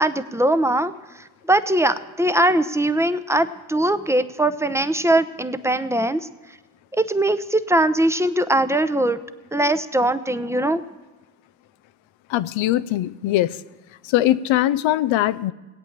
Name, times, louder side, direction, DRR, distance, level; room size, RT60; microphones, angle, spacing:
voice 1, 0.0-6.3 6.9-9.2 9.5-10.8, right 1 dB, 5° right, 12 dB, 0.8 m, -21 dB
voice 2, 12.3-13.6 14.0-15.5, left 14 dB, 80° left, 16 dB, 0.6 m, -21 dB
17.5 x 8.6 x 7.4 m, 1.2 s
supercardioid pair, 60°, 46 cm